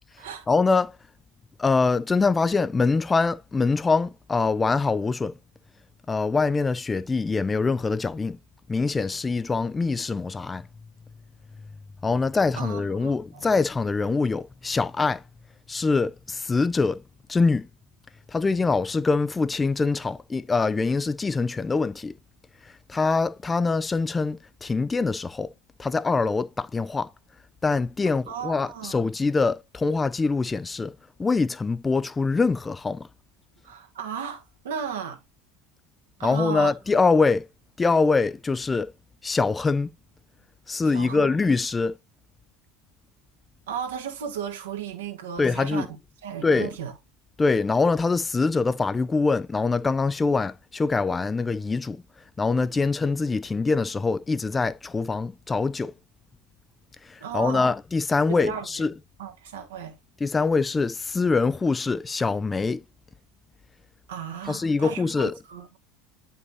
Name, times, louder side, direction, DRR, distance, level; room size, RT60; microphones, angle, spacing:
voice 1, 0.5-0.9 1.6-5.3 6.1-8.4 8.7-10.6 12.0-15.2 15.7-17.0 17.3-17.7 18.3-22.1 22.9-25.5 25.8-27.1 27.6-30.9 31.2-33.1 36.2-37.5 37.8-38.9 39.2-39.9 40.7-42.0 45.4-45.9 46.4-46.7 47.4-52.0 52.4-55.9 57.0-58.9 60.2-62.8 64.5-65.3, left 4 dB, 20° left, 0.7 m, -24 dB
voice 2, 12.6-13.4 28.3-29.0 33.6-35.2 36.2-36.7 40.9-41.3 43.7-45.9 46.2-46.9 57.2-57.7 58.3-58.8 59.2-60.0 64.1-65.8, right 8 dB, 70° right, 1.6 m, -35 dB
9.3 x 5.5 x 2.9 m
figure-of-eight pair, 70°, 0 cm